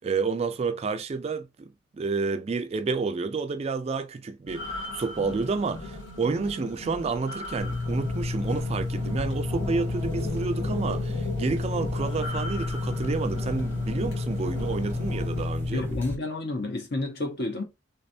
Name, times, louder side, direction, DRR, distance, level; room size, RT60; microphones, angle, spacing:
voice 1, 0.0-1.7 1.9-15.8, right 4 dB, 35° right, 0.3 m, -30 dB
sound 1, 4.5-15.5, left 2 dB, 90° left, 1.8 m, -38 dB
sound 2, 7.6-16.2, left 2 dB, 10° left, 0.9 m, -30 dB
voice 2, 15.7-17.6, left 2 dB, 60° left, 1.0 m, -30 dB
3.3 x 3.2 x 2.6 m
head